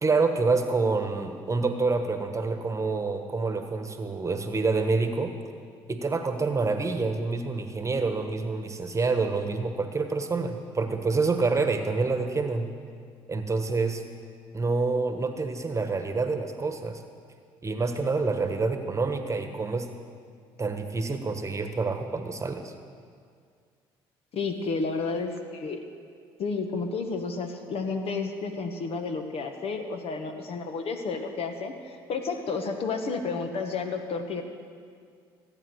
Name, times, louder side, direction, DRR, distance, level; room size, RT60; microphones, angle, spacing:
voice 1, 0.0-5.3 5.9-12.7 13.3-14.0 14.5-17.0 17.6-19.9 20.6-22.7, right 3 dB, 25° right, 7 dB, 1.4 m, -27 dB
voice 2, 24.3-25.8 26.4-34.4, left 4 dB, 55° left, 6 dB, 1.4 m, -31 dB
16.0 x 8.8 x 6.3 m, 2.2 s
hypercardioid pair, 65°, 12 cm